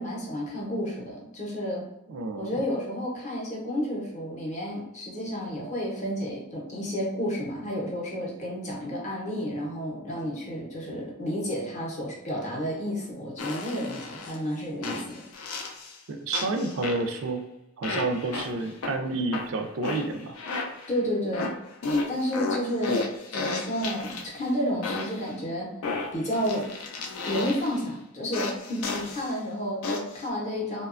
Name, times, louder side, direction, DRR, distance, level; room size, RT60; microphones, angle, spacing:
voice 1, 0.0-1.8 2.4-15.2 20.9-21.5 22.1-23.0 23.3-25.7 26.1-26.7 27.3-30.9, equal, 30° left, -4 dB, 0.6 m, -31 dB
voice 2, 2.1-2.6 16.1-17.4 17.8-20.3, right 3 dB, 65° right, 5 dB, 0.3 m, -29 dB
sound 1, 13.4-14.4 14.8-16.0 16.3-17.3 17.8-18.9 19.3-21.0 21.3-24.4 24.8-25.3 25.8-27.8 28.3-29.3 29.8-30.3, left 3 dB, 75° left, 0.4 m, -33 dB
2.8 x 2.2 x 2.4 m, 0.86 s
head